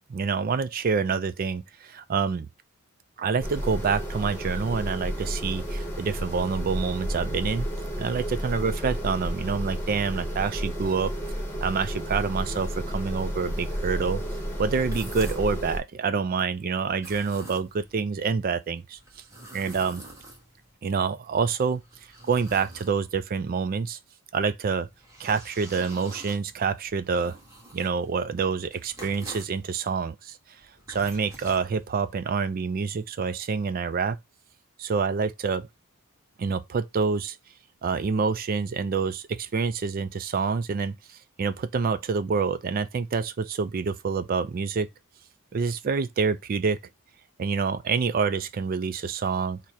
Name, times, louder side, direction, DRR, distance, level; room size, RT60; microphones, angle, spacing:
voice 1, 0.1-2.5 3.2-7.7 8.0-11.1 11.6-14.2 14.6-19.0 19.5-20.0 20.8-21.8 22.3-24.0 24.3-24.9 25.2-27.4 27.7-30.4 30.9-34.2 34.8-35.7 36.4-37.4 37.8-41.0 41.4-44.9 45.5-46.8 47.4-49.6, right 5 dB, 40° right, 0.3 m, -27 dB
sound 1, 3.4-15.8, equal, 10° left, 1.0 m, -32 dB
sound 2, 14.8-15.6 16.9-17.9 19.0-20.7 21.5-23.3 24.7-29.6 30.6-32.2, right 1 dB, 15° right, 1.3 m, -47 dB
4.1 x 2.1 x 4.6 m
head